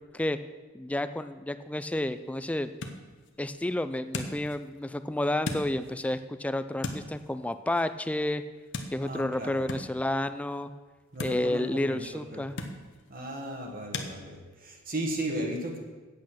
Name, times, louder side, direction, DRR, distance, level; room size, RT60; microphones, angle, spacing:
voice 1, 0.7-2.7 3.4-8.4 8.9-10.7 11.2-12.6, left 1 dB, 5° left, 11 dB, 0.3 m, -30 dB
sound 1, 1.6-14.1, left 2 dB, 60° left, 1.0 m, -42 dB
voice 2, 9.0-9.7 11.1-12.5 13.1-15.8, right 1 dB, 45° right, 1 dB, 1.5 m, -35 dB
8.4 x 8.4 x 6.3 m, 1.3 s
head